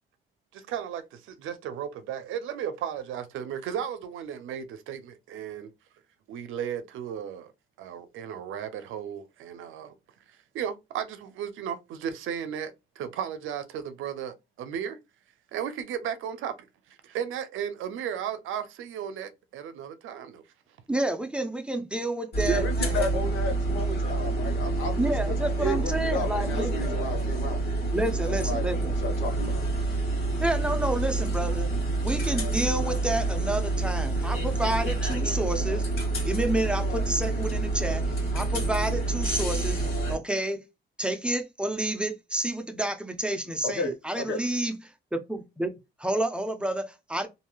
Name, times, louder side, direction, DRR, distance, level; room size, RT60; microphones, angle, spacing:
voice 1, 0.7-5.7 6.3-7.5 7.8-9.9 10.5-15.0 15.5-20.4, right 9 dB, 85° right, 0.6 m, -35 dB
voice 2, 20.9-23.1 25.0-27.0 27.9-28.9 30.4-31.7 32.0-35.8 36.2-38.0 38.3-39.8 40.1-40.6 41.0-44.8 45.1-45.7 46.0-47.3, right 1 dB, 5° right, 0.6 m, -29 dB
sound 1, 22.3-40.2, right 2 dB, 55° left, 1.6 m, -28 dB
voice 3, 22.5-27.6 28.3-28.6 29.0-29.7 43.6-44.4, left 1 dB, 75° left, 1.2 m, -32 dB
3.1 x 2.7 x 2.2 m
cardioid pair, 90°, 20 cm